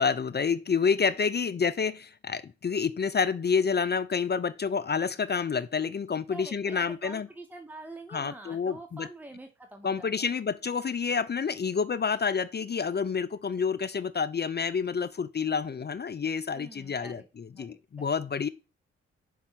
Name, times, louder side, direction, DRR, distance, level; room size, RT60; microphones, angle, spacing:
voice 1, 0.0-7.3 8.1-9.1 9.8-18.5, left 6 dB, 35° left, 0.6 m, -28 dB
voice 2, 6.3-10.3 16.5-17.3 17.6-18.1, right 2 dB, 5° right, 1.2 m, -46 dB
5.5 x 3.7 x 5.8 m
hypercardioid pair, 40°, 30 cm